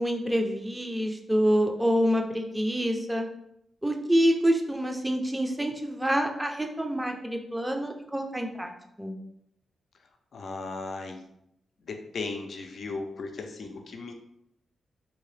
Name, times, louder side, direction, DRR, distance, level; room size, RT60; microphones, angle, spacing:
voice 1, 0.0-3.3 3.8-8.7 9.0-9.2, equal, 10° right, 3 dB, 0.5 m, -26 dB
voice 2, 10.3-11.2 11.8-14.1, left 3 dB, 65° left, 4 dB, 0.5 m, -36 dB
3.2 x 2.8 x 3.2 m, 0.78 s
cardioid pair, 85°, 0 cm